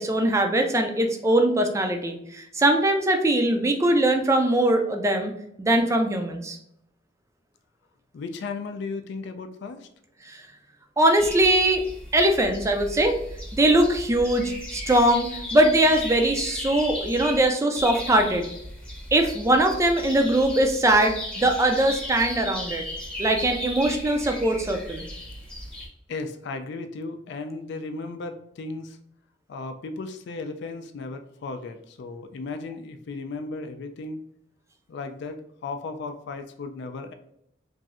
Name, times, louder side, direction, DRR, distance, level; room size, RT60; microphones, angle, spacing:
voice 1, 0.0-5.3 5.6-6.6 10.3-10.4 11.0-11.8 12.1-13.1 13.5-18.5 19.1-22.8 23.2-25.0, right 1 dB, 15° right, 4 dB, 0.3 m, -21 dB
voice 2, 8.1-9.9 26.1-29.0 29.5-34.2 34.9-37.1, left 3 dB, 65° left, 8 dB, 0.3 m, -35 dB
sound 1, 11.2-17.5 17.8-25.9, left 1 dB, 5° left, 0.7 m, -36 dB
3.0 x 2.6 x 2.4 m, 0.75 s
head